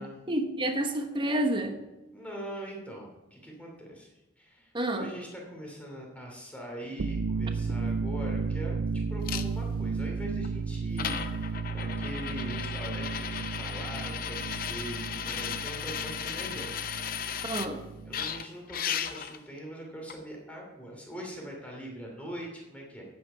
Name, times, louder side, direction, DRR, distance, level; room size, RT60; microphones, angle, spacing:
voice 1, 0.3-1.8 4.7-5.1 17.4-17.8, right 1 dB, 25° right, 6 dB, 1.0 m, -29 dB
voice 2, 2.1-4.1 4.4-16.7 18.1-23.0, equal, 5° left, -1 dB, 2.7 m, -42 dB
sound 1, 6.9-18.4, right 4 dB, 90° right, 0.4 m, -34 dB
sound 2, 9.3-9.4 10.4-10.5 11.0-17.7 18.1-19.4 20.1-20.2, left 8 dB, 50° left, 0.6 m, -35 dB
9.6 x 8.4 x 5.6 m, 1.0 s
head